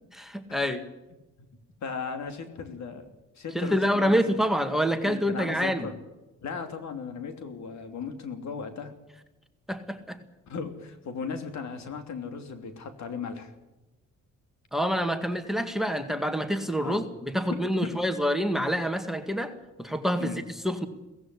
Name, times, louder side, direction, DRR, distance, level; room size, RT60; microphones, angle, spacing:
voice 1, 0.2-0.8 3.5-5.9 9.7-10.2 14.7-20.9, equal, ahead, 9 dB, 1.9 m, -27 dB
voice 2, 1.8-3.1 3.3-4.4 5.0-5.9 6.4-8.9 10.5-13.5 16.8-17.0 17.5-17.9 20.2-20.4, left 5 dB, 65° left, 7 dB, 3.1 m, -36 dB
17.5 x 15.5 x 9.8 m, 1.0 s
cardioid pair, 90°, 30 cm